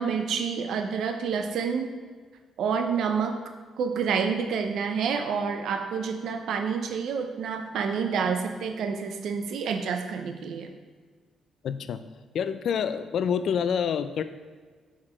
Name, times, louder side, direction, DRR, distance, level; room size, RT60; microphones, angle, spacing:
voice 1, 0.0-1.9 2.6-3.4 3.8-10.7, right 6 dB, 70° right, 6 dB, 0.6 m, -28 dB
voice 2, 11.6-12.0 12.3-14.2, left 7 dB, 65° left, 11 dB, 0.4 m, -27 dB
5.8 x 4.8 x 4.3 m, 1.5 s
cardioid pair, 90°, 0 cm